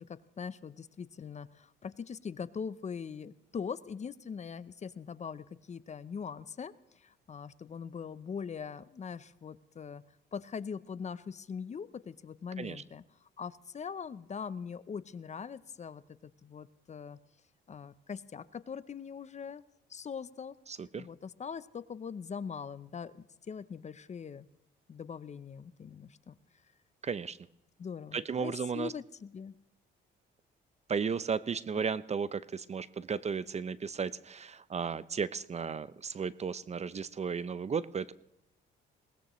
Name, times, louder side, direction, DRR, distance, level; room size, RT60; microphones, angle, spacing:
voice 1, 0.0-10.0 10.3-17.2 17.7-19.6 19.9-24.5 24.9-26.4 27.8-29.5 31.7-31.8, left 6 dB, 35° left, 16 dB, 0.6 m, -42 dB
voice 2, 20.7-21.1 27.0-27.4 28.1-28.9 30.9-38.1, right 6 dB, 35° right, 17 dB, 0.5 m, -34 dB
21.0 x 19.0 x 3.1 m, 0.81 s
cardioid pair, 90°, 20 cm